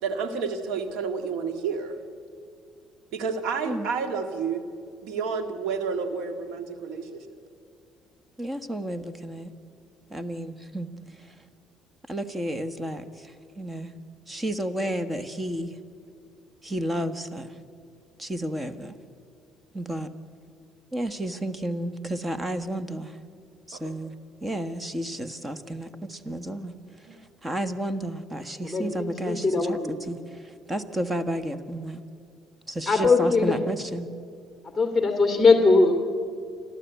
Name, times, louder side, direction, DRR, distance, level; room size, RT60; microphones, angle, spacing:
voice 1, 0.0-2.0 3.1-4.6 5.0-7.4 23.7-23.9 27.1-27.2, right 5 dB, 85° right, 8 dB, 2.0 m, -30 dB
voice 2, 8.4-9.5 10.1-10.9 11.2-11.3 12.1-13.9 14.3-15.7 16.6-17.5 18.2-19.0 19.7-20.1 20.9-23.2 23.7-24.1 24.4-25.9 26.3-26.7 27.4-32.0 32.7-34.1, right 1 dB, 15° right, 11 dB, 1.4 m, -32 dB
voice 3, 28.6-29.9 32.9-33.6 34.7-35.9, left 3 dB, 10° left, 5 dB, 2.4 m, -20 dB
29.5 x 12.5 x 8.3 m, 2.4 s
cardioid pair, 95°, 0 cm